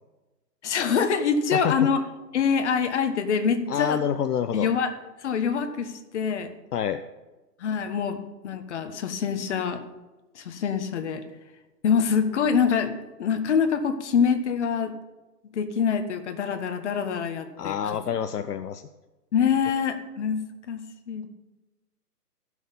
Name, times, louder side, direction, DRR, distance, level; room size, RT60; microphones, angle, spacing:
voice 1, 0.6-2.0 2.3-4.0 4.5-4.9 5.2-6.5 7.6-8.2 8.4-9.8 10.3-11.2 11.8-14.9 15.5-17.8 19.3-21.3, left 6 dB, 45° left, 7 dB, 1.3 m, -25 dB
voice 2, 3.7-4.7 6.7-7.0 17.6-18.9, left 8 dB, 70° left, 9 dB, 0.8 m, -27 dB
14.5 x 6.4 x 5.5 m, 1.1 s
hypercardioid pair, 155°, 48 cm